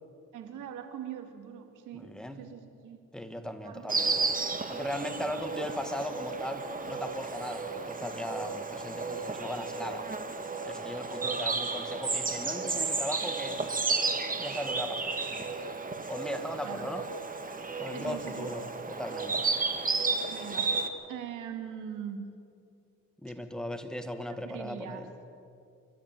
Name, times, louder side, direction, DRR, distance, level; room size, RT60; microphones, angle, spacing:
voice 1, 0.3-3.0 3.6-3.9 16.6-17.0 17.9-18.5 20.3-20.8 21.1-22.3 24.3-25.1, right 8 dB, 90° right, 6 dB, 2.4 m, -41 dB
voice 2, 1.9-2.4 3.1-4.3 4.7-10.1 10.7-13.7 14.4-15.6 16.1-17.0 17.8-19.5 23.2-25.1, equal, ahead, 7 dB, 1.9 m, -38 dB
Insect, 3.9-20.9, right 4 dB, 25° right, 2.1 m, -33 dB
29.5 x 13.5 x 9.2 m, 2.5 s
cardioid pair, 90°, 30 cm